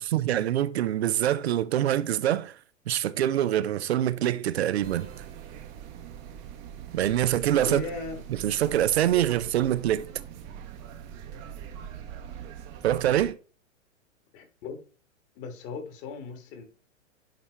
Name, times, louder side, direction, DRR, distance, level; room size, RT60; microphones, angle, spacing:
voice 1, 0.0-2.6 2.9-5.1 6.9-7.8 8.3-10.1 12.8-13.4, right 12 dB, 55° right, 0.6 m, -25 dB
sound 1, 4.8-13.3, right 9 dB, 30° right, 1.0 m, -42 dB
voice 2, 7.6-8.3 14.3-14.8 15.3-16.6, left 4 dB, 35° left, 1.6 m, -37 dB
10.5 x 4.2 x 3.3 m
figure-of-eight pair, 110°, 39 cm